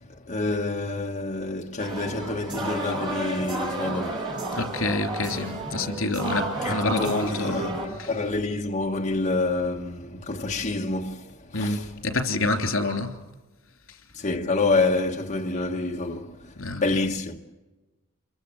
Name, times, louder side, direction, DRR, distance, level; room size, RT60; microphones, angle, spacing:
voice 1, 0.0-4.6 6.6-11.9 14.1-17.4, left 3 dB, 40° left, 1.3 m, -28 dB
sound 1, 1.8-7.9, right 1 dB, 25° right, 8.0 m, -31 dB
voice 2, 4.5-7.6 8.0-8.1 11.5-13.1 16.6-16.8, left 2 dB, 85° left, 3.2 m, -27 dB
28.5 x 23.0 x 7.2 m
head